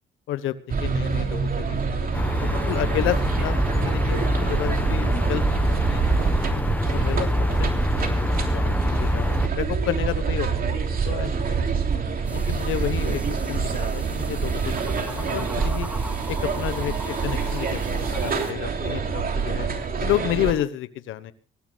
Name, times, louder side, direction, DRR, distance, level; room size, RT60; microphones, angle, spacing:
voice 1, 0.3-6.0 6.7-11.6 12.2-15.9 16.3-19.7 20.0-21.3, left 12 dB, 85° left, 13 dB, 1.3 m, -31 dB
Oxford Circus - Crowds by Station, 0.7-20.5, right 5 dB, 50° right, 3.3 m, -26 dB
sound 1, 2.1-9.5, left 1 dB, 10° left, 1.1 m, -25 dB
sound 2, 12.3-18.5, right 1 dB, 5° right, 2.4 m, -39 dB
25.5 x 16.5 x 2.4 m, 0.34 s
cardioid pair, 90°, 20 cm